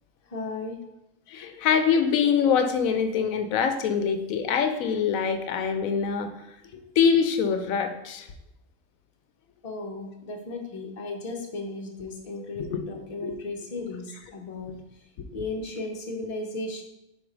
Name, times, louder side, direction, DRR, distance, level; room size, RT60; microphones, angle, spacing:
voice 1, 0.3-0.8 6.7-6.8 9.6-14.8 15.3-16.8, left 2 dB, 30° left, 1 dB, 0.8 m, -35 dB
voice 2, 1.3-6.3 7.0-8.3 12.4-12.8 13.2-13.3, left 6 dB, 85° left, 8 dB, 1.0 m, -24 dB
4.6 x 4.2 x 5.0 m, 0.89 s
omnidirectional pair, 1.4 m